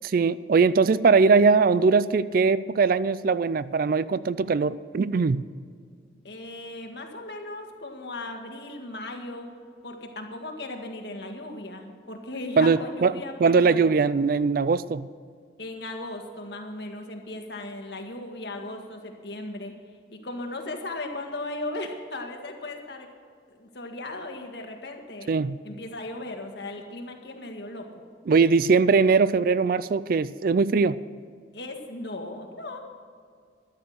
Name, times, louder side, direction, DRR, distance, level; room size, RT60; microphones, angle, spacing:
voice 1, 0.0-5.4 12.6-13.1 13.4-15.1 25.3-25.6 28.3-31.0, right 4 dB, 50° right, 17 dB, 0.4 m, -21 dB
voice 2, 6.2-9.5 9.8-13.9 15.6-19.7 20.1-23.1 23.5-25.3 25.6-27.9 31.5-32.8, left 2 dB, 60° left, 3 dB, 1.8 m, -37 dB
12.5 x 11.0 x 6.5 m, 2.1 s
head